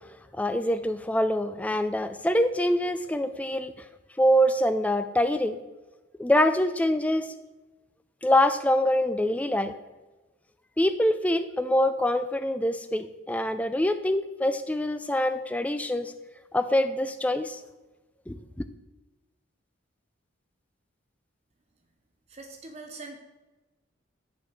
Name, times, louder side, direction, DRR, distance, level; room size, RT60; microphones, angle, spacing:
voice 1, 0.4-3.7 4.2-5.6 6.2-7.3 8.2-9.7 10.8-16.1 16.5-17.6 18.3-18.6, left 1 dB, 5° left, 10 dB, 0.3 m, -25 dB
voice 2, 22.3-23.2, right 3 dB, 35° right, 4 dB, 0.6 m, -42 dB
8.2 x 4.4 x 4.8 m, 1.1 s
head